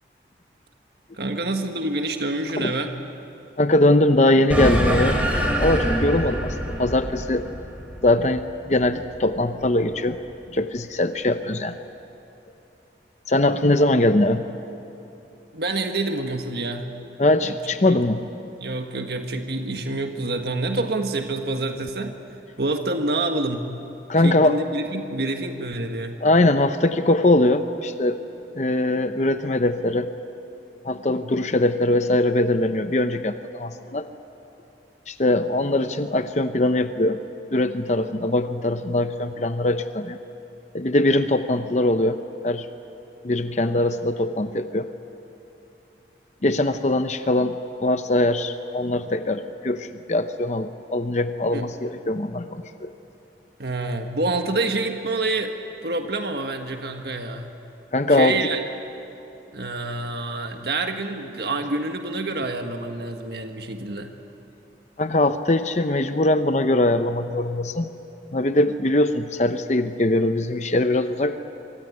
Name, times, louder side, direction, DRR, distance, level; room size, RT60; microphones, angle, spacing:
voice 1, 1.1-3.0 15.5-16.9 17.4-17.6 17.9-18.0 18.6-22.1 22.6-23.7 24.2-26.2 51.5-51.7 53.6-55.5 55.8-57.5 58.1-58.6 59.5-64.1, right 2 dB, 65° right, 5 dB, 1.6 m, -27 dB
voice 2, 3.6-5.2 5.6-7.5 8.0-10.2 10.5-11.8 13.3-14.4 17.2-18.2 24.1-24.6 26.2-28.2 28.6-30.1 30.8-34.1 35.1-37.2 37.5-40.2 40.7-42.2 42.4-42.7 43.2-44.9 46.4-52.9 57.9-58.4 65.0-67.9 68.3-71.4, left 1 dB, 40° left, 9 dB, 0.8 m, -21 dB
sound 1, 4.5-9.3, right 1 dB, 10° right, 4.1 m, -25 dB
26.0 x 23.5 x 9.8 m, 3.0 s
head